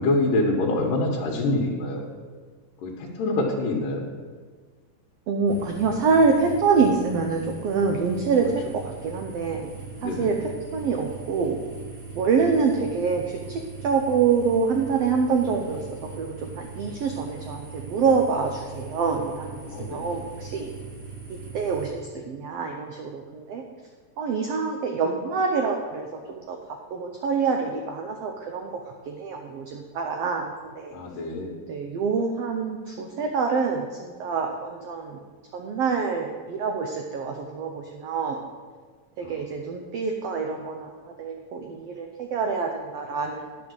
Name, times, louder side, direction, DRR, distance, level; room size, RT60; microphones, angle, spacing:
voice 1, 0.0-2.1 2.8-4.1 10.0-10.3 19.7-20.2 30.9-31.6 39.2-39.4, left 2 dB, 75° left, -2 dB, 2.7 m, -26 dB
voice 2, 5.3-9.7 10.0-11.6 12.1-20.7 21.3-23.6 24.2-26.6 26.9-30.9 31.7-35.2 35.5-38.4 39.2-43.6, right 5 dB, 85° right, 3 dB, 1.3 m, -26 dB
sound 1, 5.5-21.9, right 4 dB, 45° right, 4.6 m, -40 dB
10.5 x 6.2 x 6.3 m, 1.5 s
omnidirectional pair, 3.8 m